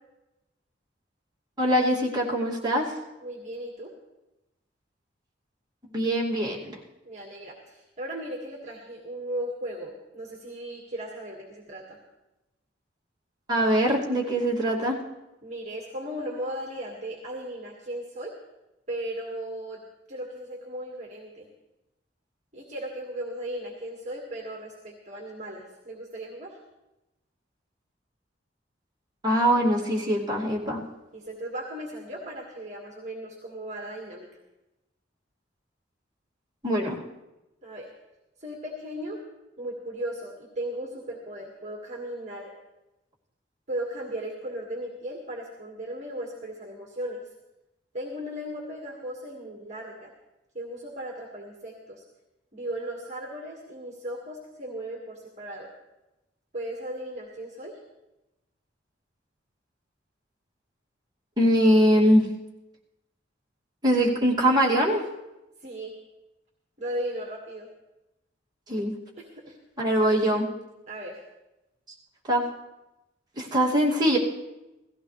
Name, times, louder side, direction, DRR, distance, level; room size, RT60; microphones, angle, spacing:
voice 1, 1.6-2.9 5.9-6.7 13.5-15.0 29.2-30.8 36.6-37.0 61.4-62.2 63.8-65.0 68.7-68.9 69.8-70.5 72.3-72.4 73.4-74.2, equal, 25° right, -5 dB, 2.5 m, -22 dB
voice 2, 3.2-3.9 7.0-12.0 15.4-18.3 18.9-19.8 20.1-21.5 22.5-26.6 31.1-34.3 37.6-37.9 38.4-39.2 39.6-42.5 43.7-47.2 47.9-50.1 50.5-52.0 52.5-55.7 56.5-57.7 65.6-65.9 66.8-67.7 69.2-69.3 70.9-71.1, right 1 dB, 40° right, -1 dB, 1.9 m, -36 dB
17.5 x 15.0 x 3.3 m, 0.98 s
head